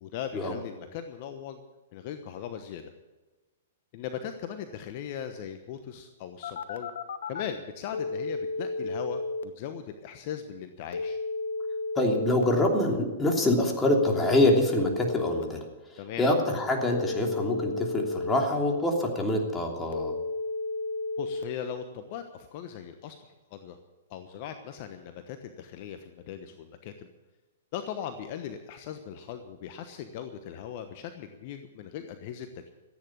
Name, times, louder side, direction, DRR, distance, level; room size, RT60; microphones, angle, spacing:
voice 1, 0.0-1.6 1.9-2.9 3.9-6.9 7.3-11.2 16.0-16.2 21.2-23.8 24.1-27.1 27.7-32.7, left 8 dB, 50° left, 8 dB, 1.1 m, -39 dB
Telephone, 6.4-7.4 7.9-9.4 10.9-12.4 13.9-15.4 16.9-18.4 19.9-21.4, left 3 dB, 70° left, 1.2 m, -32 dB
voice 2, 11.9-15.6 15.9-20.1, left 1 dB, 15° left, 1 dB, 3.0 m, -25 dB
14.5 x 9.4 x 8.7 m, 1.2 s
hypercardioid pair, 120°, 0 cm